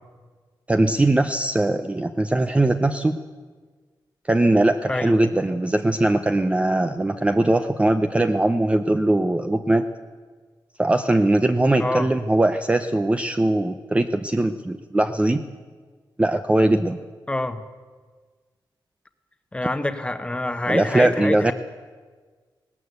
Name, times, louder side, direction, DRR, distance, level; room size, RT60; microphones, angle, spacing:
voice 1, 0.7-3.2 4.3-9.9 10.8-15.4 16.2-17.0 20.7-21.5, right 1 dB, 15° right, 8 dB, 0.6 m, -20 dB
voice 2, 11.8-12.1 17.3-17.6 19.5-21.5, left 1 dB, 15° left, 9 dB, 1.1 m, -26 dB
19.0 x 18.0 x 8.1 m, 1.5 s
wide cardioid pair, 150°, 8 cm